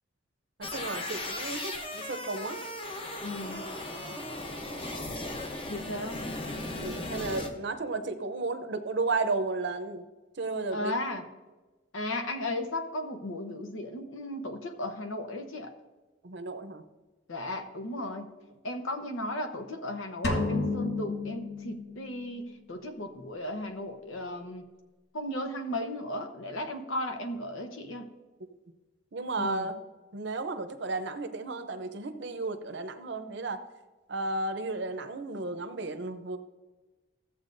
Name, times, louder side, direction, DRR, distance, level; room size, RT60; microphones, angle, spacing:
sound 1, 0.6-7.5, left 1 dB, 25° left, 0.8 m, -37 dB
voice 1, 0.7-2.6 6.8-10.0 10.4-10.9 16.2-16.8 29.1-29.8 30.1-33.6 34.1-36.4, right 3 dB, 60° right, 8 dB, 0.7 m, -33 dB
voice 2, 3.2-3.6 5.7-6.3 10.7-11.2 11.9-15.7 17.3-18.3 18.6-24.6 25.1-28.1 29.4-29.7, left 1 dB, 85° left, 6 dB, 0.9 m, -35 dB
sound 2, 20.2-22.3, left 3 dB, 60° left, 1.0 m, -31 dB
14.0 x 7.9 x 2.6 m, 1.2 s
head